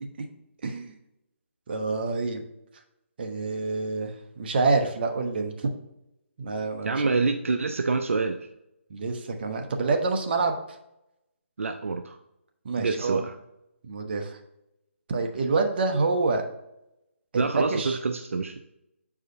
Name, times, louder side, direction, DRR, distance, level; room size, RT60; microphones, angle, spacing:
voice 1, 0.6-1.0 1.7-2.4 3.2-5.7 6.4-7.1 8.9-10.5 12.6-13.3 13.8-14.4 15.1-16.4 17.3-18.0, right 3 dB, 50° right, 4 dB, 1.0 m, -27 dB
voice 2, 6.8-8.5 11.6-12.2 12.8-13.3 17.4-18.5, right 4 dB, 75° right, 6 dB, 0.5 m, -27 dB
7.7 x 4.8 x 2.7 m, 0.87 s
figure-of-eight pair, 150°, 7 cm